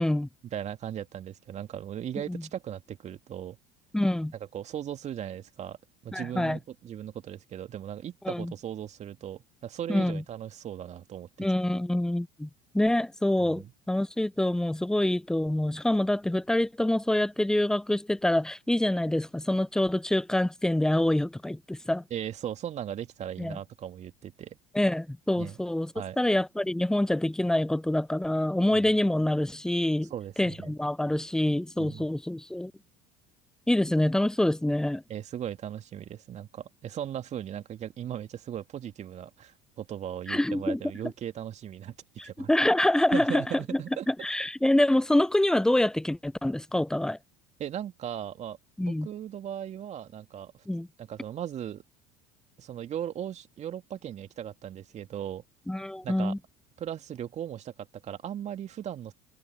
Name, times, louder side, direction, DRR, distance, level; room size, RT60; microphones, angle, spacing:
voice 1, 0.4-3.6 4.5-5.8 6.0-11.5 13.4-13.7 22.1-24.6 25.4-25.6 25.9-26.2 28.7-28.8 30.1-30.7 31.8-32.1 35.1-42.0 42.2-42.5 43.1-44.1 47.6-50.7 51.0-51.8 52.6-55.4 56.0-56.4 56.8-59.1, right 10 dB, 40° right, 2.3 m, -38 dB
voice 2, 3.9-4.3 6.1-6.6 8.3-8.5 9.9-10.2 11.4-12.5 12.7-22.0 23.4-23.6 24.7-25.9 26.2-30.1 30.4-32.7 33.7-35.0 40.3-40.8 42.2-43.4 43.7-43.8 44.1-47.2 48.8-49.1 50.7-50.9 55.7-56.4, left 1 dB, 5° left, 0.4 m, -26 dB
hypercardioid pair, 70°, 17 cm